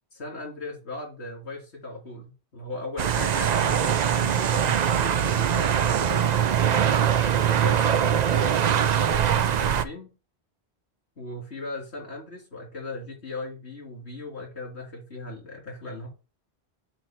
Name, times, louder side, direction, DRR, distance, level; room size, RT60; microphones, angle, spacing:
voice 1, 0.1-6.3 6.6-7.0 7.5-10.1 11.2-16.1, left 2 dB, 85° left, -1 dB, 2.9 m, -38 dB
sound 1, 3.0-9.8, right 9 dB, 55° right, 0.5 m, -22 dB
7.6 x 2.7 x 5.7 m, 0.32 s
omnidirectional pair, 1.1 m